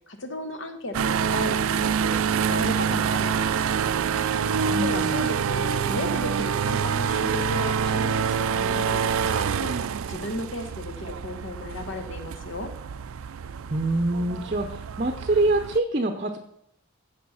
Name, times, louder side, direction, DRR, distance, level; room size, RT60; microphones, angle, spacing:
voice 1, 0.1-3.7 4.2-9.7 10.1-12.7, left 1 dB, 60° left, 7 dB, 1.3 m, -35 dB
sound 1, 0.9-15.8, right 7 dB, 75° right, 0.4 m, -26 dB
voice 2, 4.7-5.2 13.7-16.4, right 2 dB, 35° right, 5 dB, 0.7 m, -25 dB
15.0 x 5.3 x 5.6 m, 0.74 s
head